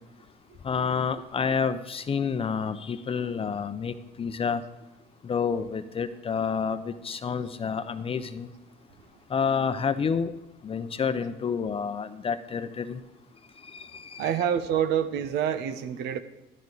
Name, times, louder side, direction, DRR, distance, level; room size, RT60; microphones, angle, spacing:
voice 1, 0.6-4.6 5.2-8.5 9.3-10.3 10.6-13.0 13.6-14.3, left 6 dB, 35° left, 11 dB, 0.7 m, -29 dB
voice 2, 14.2-16.2, right 9 dB, 80° right, 11 dB, 1.0 m, -27 dB
12.0 x 12.0 x 4.0 m, 0.97 s
cardioid pair, 110°, 17 cm